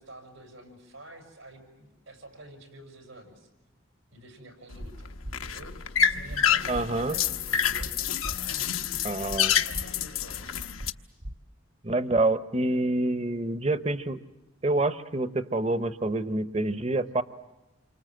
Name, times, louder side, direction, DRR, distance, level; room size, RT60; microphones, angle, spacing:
voice 1, 0.0-3.5 4.1-5.1 5.4-9.1 9.6-10.7, right 1 dB, 90° right, 4 dB, 7.0 m, -48 dB
sound 1, 4.7-10.9, left 8 dB, 90° left, 1.0 m, -28 dB
sound 2, 4.8-4.9 5.2-5.4 6.3-6.4 6.7-6.8 7.8-7.9 8.2-8.4 9.3-9.4 9.7-9.8 10.8-10.9 11.2-11.3, equal, 55° right, 1.5 m, -37 dB
voice 2, 6.7-7.2 9.0-9.6 11.8-14.2 14.6-17.2, right 2 dB, 30° right, 11 dB, 0.9 m, -27 dB
28.0 x 25.0 x 7.8 m, 1.0 s
head